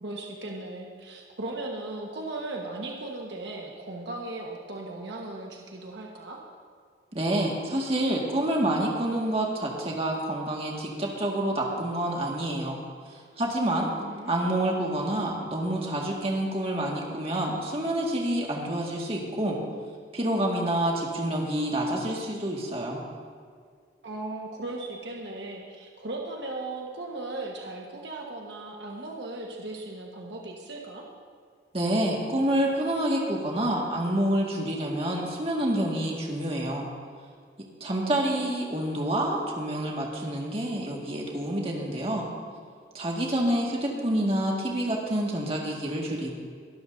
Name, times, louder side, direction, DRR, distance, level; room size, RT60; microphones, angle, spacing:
voice 1, 0.0-6.4 14.0-14.5 24.0-31.1 37.9-38.3, right 2 dB, 65° right, -1 dB, 1.4 m, -37 dB
voice 2, 7.1-12.8 13.4-13.9 14.3-19.6 20.1-23.0 31.7-36.9 37.8-42.3 42.9-46.3, right 1 dB, 30° right, -2 dB, 1.9 m, -28 dB
22.5 x 12.5 x 2.7 m, 2.1 s
head